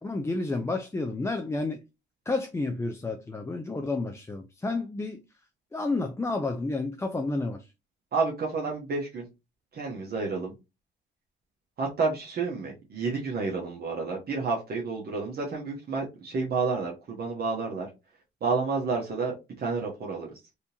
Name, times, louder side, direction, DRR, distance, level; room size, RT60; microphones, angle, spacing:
voice 1, 0.0-1.8 2.3-5.2 5.7-7.7, left 3 dB, 15° left, 0.4 m, -30 dB
voice 2, 8.1-9.2 9.7-10.5 11.8-17.9 18.4-20.3, right 4 dB, 50° right, 1.0 m, -30 dB
3.5 x 2.8 x 2.7 m
cardioid pair, 90°, 20 cm